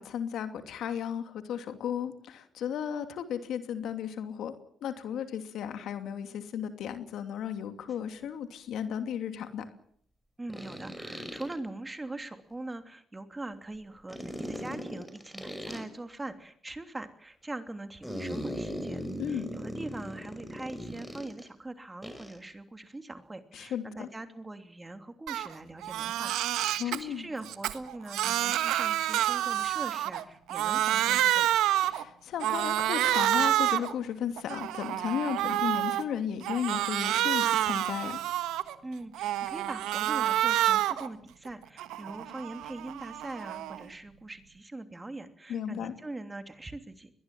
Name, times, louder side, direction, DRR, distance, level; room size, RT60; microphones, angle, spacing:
voice 1, 0.0-4.5 4.8-9.7 19.2-19.5 23.5-24.1 26.8-27.3 31.8-38.2 45.5-45.9, left 8 dB, 70° left, 8 dB, 2.7 m, -34 dB
sound 1, 7.9-8.0 10.5-11.5 14.1-15.8 18.0-21.5 22.0-22.4, equal, ahead, 5.7 m, -38 dB
voice 2, 10.4-26.3 26.6-31.5 38.8-47.1, right 2 dB, 20° right, 8 dB, 2.9 m, -42 dB
Crying sobbing, 25.3-25.5 25.8-27.0 27.4-30.2 30.5-32.0 32.4-33.9 34.4-36.0 36.4-38.7 39.1-41.1 41.5-43.8, right 13 dB, 75° right, 1.4 m, -28 dB
22.0 x 20.0 x 7.7 m, 0.65 s
supercardioid pair, 60°, 0 cm